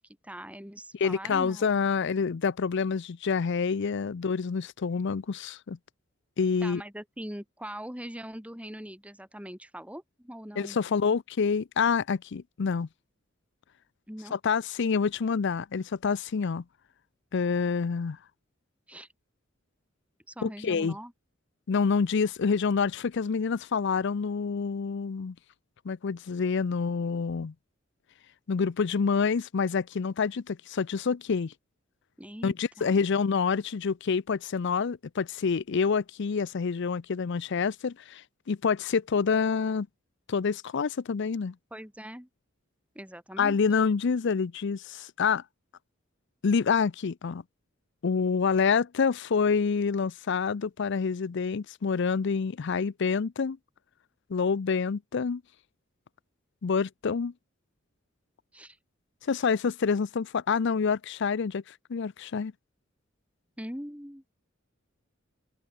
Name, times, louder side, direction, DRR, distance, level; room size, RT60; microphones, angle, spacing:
voice 1, 0.0-1.8 6.6-10.8 14.1-14.4 18.9-19.1 20.3-21.1 32.2-32.9 41.7-42.3 42.9-43.6 58.5-58.8 63.6-64.3, equal, 5° right, 6.1 m, -41 dB
voice 2, 0.9-5.8 6.4-6.8 10.6-12.9 14.3-16.6 17.3-18.2 20.4-20.9 21.7-25.3 25.9-27.5 28.5-31.5 32.4-39.9 40.3-41.5 43.4-45.4 46.4-47.4 48.0-53.6 54.3-55.4 56.6-57.3 59.2-62.5, left 5 dB, 60° left, 0.5 m, -27 dB
head